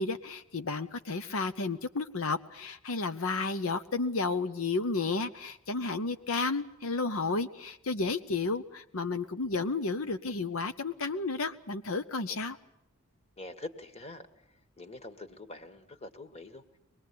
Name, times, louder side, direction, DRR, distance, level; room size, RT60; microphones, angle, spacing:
voice 1, 0.0-12.6, left 3 dB, 80° left, 10 dB, 0.9 m, -32 dB
voice 2, 13.4-16.6, left 2 dB, 30° left, 9 dB, 1.7 m, -45 dB
24.0 x 21.0 x 8.5 m, 0.80 s
head